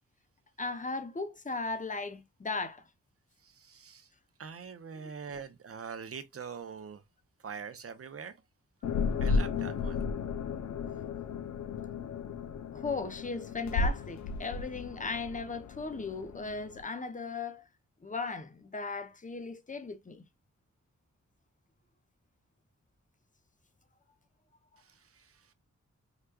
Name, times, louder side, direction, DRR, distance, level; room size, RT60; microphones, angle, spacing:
voice 1, 0.6-2.8 12.7-17.6 18.0-20.2, left 4 dB, 25° left, 0.6 m, -37 dB
voice 2, 3.4-4.1 4.4-7.0 7.4-8.4 9.2-10.0 24.8-25.5, right 6 dB, 50° right, 0.6 m, -44 dB
sound 1, 8.8-16.8, left 4 dB, 65° left, 0.5 m, -34 dB
4.7 x 2.2 x 2.2 m
cardioid pair, 55°, 31 cm